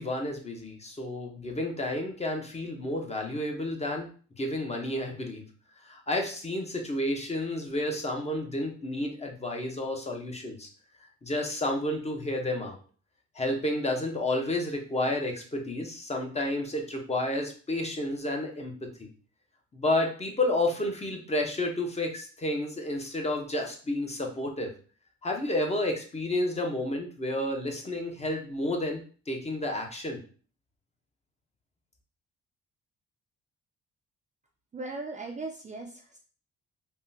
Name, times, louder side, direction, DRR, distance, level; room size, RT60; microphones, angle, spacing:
voice 1, 0.0-4.1 4.4-5.4 5.8-10.7 11.2-12.8 13.3-19.1 19.7-24.7 25.2-30.2, left 1 dB, 20° left, 2 dB, 0.7 m, -31 dB
voice 2, 34.7-36.2, right 3 dB, 25° right, 2 dB, 0.4 m, -38 dB
3.5 x 2.1 x 2.6 m, 0.41 s
cardioid pair, 90°, 30 cm